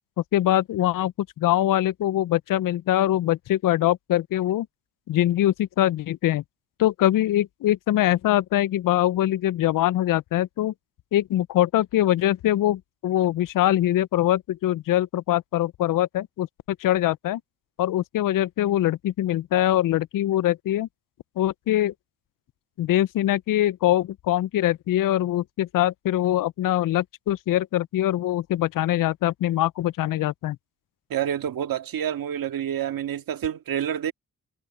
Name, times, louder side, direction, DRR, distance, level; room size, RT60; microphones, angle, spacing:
voice 1, 0.3-1.1 1.4-4.7 5.1-6.4 6.8-10.7 11.1-16.5 16.8-17.4 17.8-20.9 21.4-21.9 22.8-30.6, left 13 dB, 70° left, 0.5 m, -23 dB
voice 2, 31.1-34.1, right 9 dB, 80° right, 1.9 m, -28 dB
cardioid pair, 65°, 34 cm